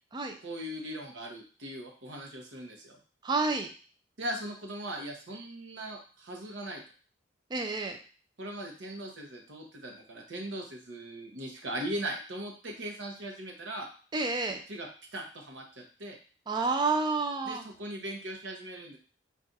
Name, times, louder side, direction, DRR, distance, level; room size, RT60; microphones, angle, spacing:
voice 1, 0.4-3.0 4.2-6.8 8.4-13.9 14.7-16.2 17.4-19.0, right 1 dB, 75° right, 1 dB, 0.8 m, -39 dB
voice 2, 3.2-3.7 7.5-8.0 14.1-14.6 16.5-17.6, right 3 dB, 25° right, 5 dB, 0.4 m, -29 dB
2.5 x 2.4 x 3.9 m, 0.38 s
head